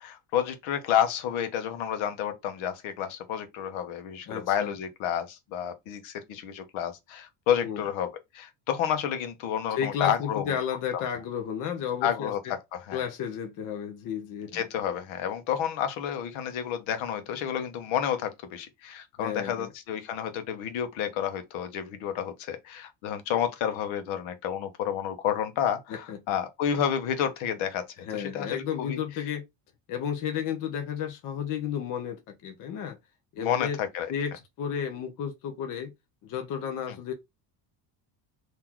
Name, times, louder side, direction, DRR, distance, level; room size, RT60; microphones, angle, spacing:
voice 1, 0.0-10.6 10.9-11.0 12.0-13.0 14.5-27.8 28.1-29.0 33.4-34.1 36.9-37.0, left 9 dB, 75° left, 1.1 m, -30 dB
voice 2, 4.3-4.7 7.6-7.8 9.8-12.3 12.9-14.7 19.2-19.7 25.9-26.2 28.0-29.4 29.9-33.0 33.3-33.8 34.1-34.3 34.6-35.9 36.2-37.1, left 8 dB, 40° left, 0.7 m, -32 dB
3.9 x 2.8 x 4.5 m
cardioid pair, 180°, 48 cm